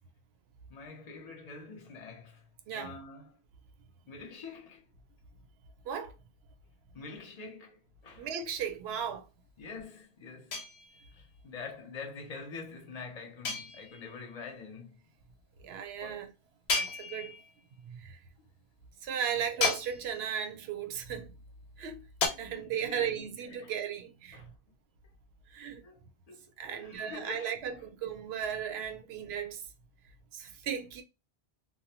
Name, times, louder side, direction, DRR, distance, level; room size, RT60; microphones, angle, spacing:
voice 1, 0.7-2.5 2.7-3.4 4.1-4.8 6.9-8.3 9.6-10.6 11.1-15.0 16.0-16.2 19.3-19.5 22.3-23.3 23.6-23.7 24.3-24.5 25.8-27.9, left 4 dB, 45° left, 0.7 m, -46 dB
voice 2, 5.8-6.2 8.2-9.3 15.6-16.3 16.7-17.4 17.8-18.2 19.0-21.4 21.8-22.0 22.4-24.4 25.5-25.9 26.6-29.7 30.3-31.0, right 8 dB, 80° right, 0.8 m, -36 dB
sound 1, 10.5-11.2 13.4-14.2 16.7-17.6 19.6-20.4 22.2-22.3, left 4 dB, 80° left, 1.0 m, -33 dB
2.6 x 2.1 x 2.8 m
omnidirectional pair, 1.1 m